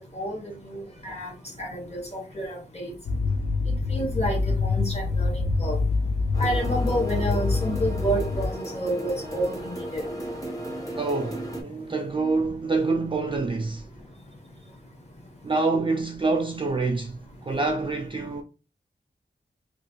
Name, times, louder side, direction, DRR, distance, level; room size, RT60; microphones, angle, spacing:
voice 1, 0.1-1.3 1.6-2.9 3.7-5.8 6.4-10.0, right 1 dB, 35° left, 1.3 m, -30 dB
sound 1, 3.1-8.5, left 3 dB, 75° left, 0.5 m, -26 dB
sound 2, 6.3-11.6, right 1 dB, 20° left, 0.9 m, -35 dB
voice 2, 11.0-13.9 15.4-18.4, right 3 dB, 30° right, 0.3 m, -26 dB
3.1 x 2.3 x 3.0 m
wide cardioid pair, 90°, 18 cm